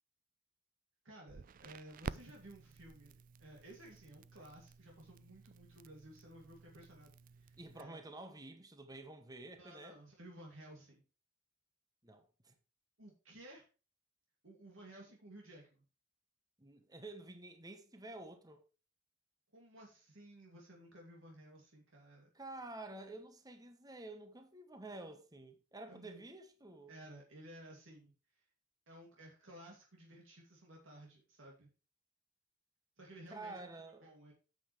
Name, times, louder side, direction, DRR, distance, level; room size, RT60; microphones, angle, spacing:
voice 1, 1.0-3.1 3.4-8.0 9.6-11.0 13.0-13.7 14.4-15.8 19.5-22.3 25.9-26.2 26.9-28.4 28.9-31.7 33.0-33.7 34.0-34.3, right 1 dB, 70° right, 2.5 m, -56 dB
Crackle, 1.3-7.8, right 5 dB, 40° right, 0.4 m, -51 dB
voice 2, 7.6-10.0 12.0-12.5 16.6-18.6 22.3-26.9 33.3-34.1, right 2 dB, 20° right, 1.1 m, -50 dB
9.1 x 7.9 x 3.2 m
head